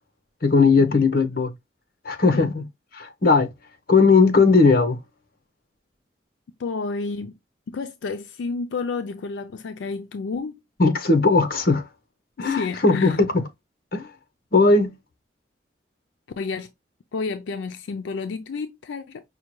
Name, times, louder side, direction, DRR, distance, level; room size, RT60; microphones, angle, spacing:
voice 1, 0.4-1.5 2.0-2.6 2.9-3.5 3.9-5.0 10.8-11.8 12.4-13.4 13.9-14.1 14.5-14.9, left 4 dB, 50° left, 0.8 m, -18 dB
voice 2, 6.6-7.3 7.7-10.6 12.4-13.2 16.4-16.7 17.1-19.2, left 4 dB, 80° left, 0.4 m, -30 dB
5.5 x 2.2 x 3.0 m
head